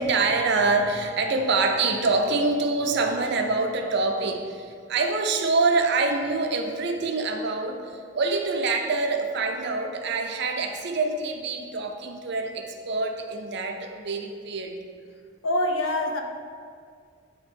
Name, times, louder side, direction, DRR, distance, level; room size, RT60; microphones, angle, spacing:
voice 1, 0.0-14.8, right 3 dB, 60° right, 4 dB, 0.6 m, -25 dB
voice 2, 15.4-16.2, left 1 dB, 80° left, 3 dB, 0.7 m, -24 dB
8.5 x 3.0 x 4.4 m, 2.1 s
head